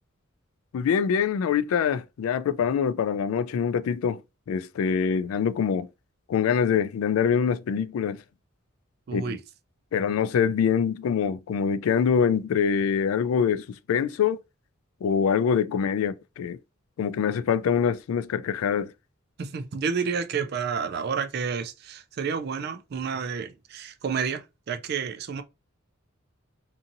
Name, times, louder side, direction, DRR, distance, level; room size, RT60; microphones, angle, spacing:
voice 1, 0.7-4.2 4.5-5.9 6.3-8.2 9.1-9.4 9.9-14.4 15.0-16.6 17.0-18.9, left 7 dB, 90° left, 0.3 m, -24 dB
voice 2, 9.1-9.4 19.4-25.4, right 6 dB, 50° right, 0.3 m, -30 dB
2.7 x 2.6 x 2.5 m
head